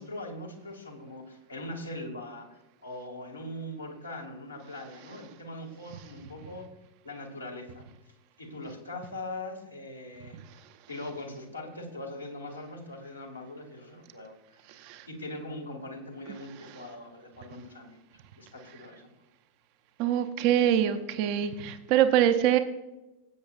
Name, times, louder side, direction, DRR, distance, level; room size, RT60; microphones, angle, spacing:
voice 1, 0.0-6.7 7.0-7.8 8.4-10.4 10.9-18.0 18.3-19.0, left 1 dB, 80° left, 0 dB, 2.1 m, -41 dB
voice 2, 14.8-15.1 20.0-22.6, right 10 dB, 45° right, 9 dB, 0.7 m, -24 dB
16.0 x 8.6 x 2.4 m, 0.99 s
figure-of-eight pair, 90°, 0 cm